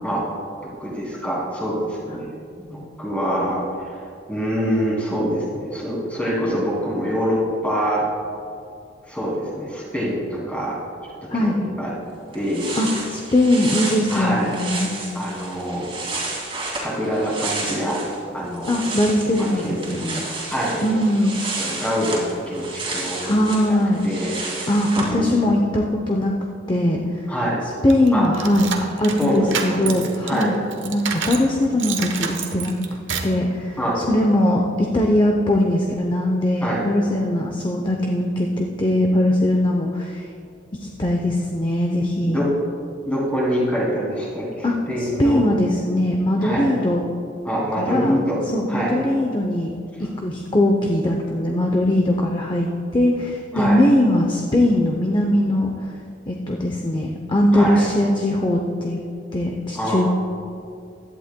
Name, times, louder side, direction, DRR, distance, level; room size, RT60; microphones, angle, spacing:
voice 1, 0.8-2.3 2.6-3.6 3.8-8.1 9.1-10.7 11.3-11.9 12.3-12.7 14.1-14.5 15.1-15.9 16.7-18.0 18.3-18.7 19.3-19.8 20.5-20.9 21.6-23.5 24.0-24.7 25.0-25.6 27.3-27.6 28.1-28.3 29.2-30.5 33.8-34.0 36.6-36.8 42.2-42.5 43.0-45.4 46.4-46.8 47.4-48.4 48.7-49.0 53.5-53.8 57.5-57.8 59.7-60.1, equal, 5° left, -5 dB, 2.5 m, -25 dB
sound 1, 12.0-12.1 12.3-18.2 18.5-25.1, right 3 dB, 30° right, 2.3 m, -31 dB
voice 2, 12.8-14.9 18.7-20.2 20.8-21.3 23.2-24.1 24.7-26.3 26.7-27.3 27.8-28.7 29.0-30.6 30.8-32.7 33.2-40.2 40.8-42.4 44.6-44.7 45.0-47.1 47.8-48.2 48.5-49.7 50.0-55.7 56.3-59.0 59.3-60.1, left 1 dB, 25° left, 1 dB, 0.6 m, -20 dB
sound 2, 27.9-31.5 31.8-33.4, right 6 dB, 75° right, 1.0 m, -29 dB
16.0 x 11.5 x 2.2 m, 2.4 s
head